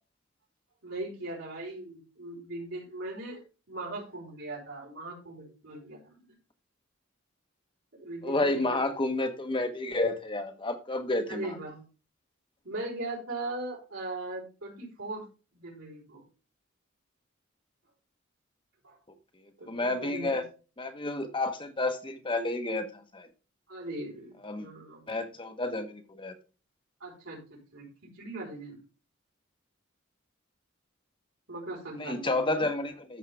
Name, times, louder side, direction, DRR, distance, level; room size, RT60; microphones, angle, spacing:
voice 1, 0.8-6.4 8.0-8.8 11.3-11.8 12.6-15.2 15.5-16.2 18.8-19.0 19.6-20.4 23.7-25.0 27.0-27.9 28.1-28.8 31.5-32.7, right 2 dB, 80° right, -4 dB, 4.5 m, -39 dB
voice 2, 8.2-11.6 19.6-20.4 20.8-23.3 24.4-24.7 25.1-26.3 32.0-33.2, left 2 dB, 25° left, 7 dB, 1.0 m, -30 dB
14.0 x 5.5 x 3.4 m, 0.34 s
head